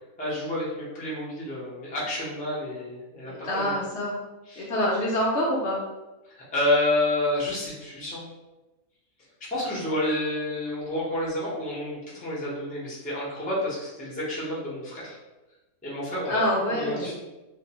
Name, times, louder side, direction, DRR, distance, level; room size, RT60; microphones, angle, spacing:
voice 1, 0.2-3.7 4.5-4.7 6.5-8.2 9.4-15.2 15.8-16.4 16.8-17.1, left 1 dB, 10° left, -7 dB, 0.4 m, -29 dB
voice 2, 3.2-4.2 4.6-5.8 16.3-17.1, equal, 65° left, -4 dB, 0.7 m, -26 dB
2.5 x 2.0 x 2.8 m, 1.1 s
omnidirectional pair, 1.4 m